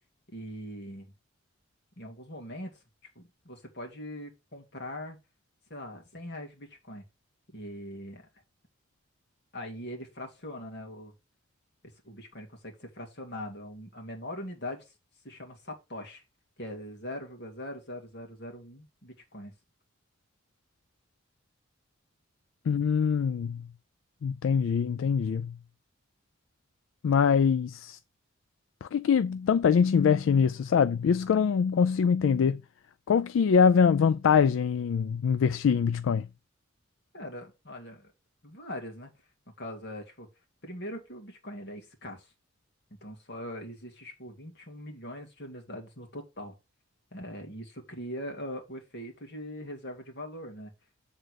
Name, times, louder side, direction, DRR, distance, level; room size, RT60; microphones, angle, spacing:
voice 1, 0.3-1.1 2.0-2.7 3.2-5.2 5.7-7.0 7.5-8.2 9.5-11.1 12.0-14.9 15.2-16.2 16.6-19.5 37.1-38.1 38.4-39.1 39.6-40.3 40.6-42.3 43.0-46.5 47.1-50.7, left 1 dB, 55° left, 2.2 m, -41 dB
voice 2, 22.7-23.6 24.2-25.5 27.0-28.0 28.8-32.6 33.1-36.3, left 6 dB, 80° left, 0.3 m, -24 dB
7.8 x 3.8 x 6.4 m
head